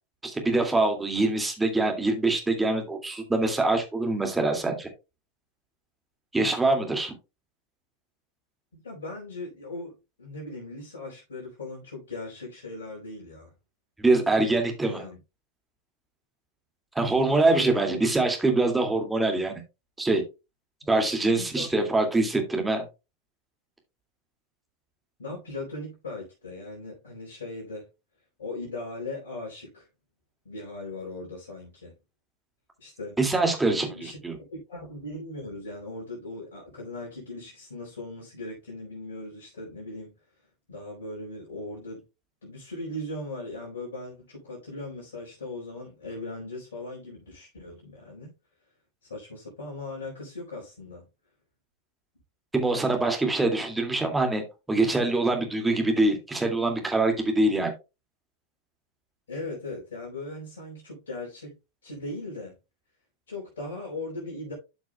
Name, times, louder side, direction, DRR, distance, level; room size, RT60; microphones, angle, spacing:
voice 1, 0.2-4.9 6.3-7.1 14.0-15.0 16.9-19.6 20.0-20.2 20.9-22.8 33.2-34.4 52.5-54.4 54.7-57.7, right 2 dB, 10° right, 2.3 m, -24 dB
voice 2, 8.7-13.5 14.8-15.2 17.7-18.0 21.2-21.9 25.2-27.9 28.4-29.9 30.4-32.0 32.8-33.2 33.7-40.1 40.7-42.0 42.4-48.3 49.1-51.0 59.3-61.5 61.8-62.6 63.3-64.5, left 2 dB, 65° left, 4.2 m, -39 dB
12.5 x 6.0 x 2.3 m
figure-of-eight pair, 90°, 0 cm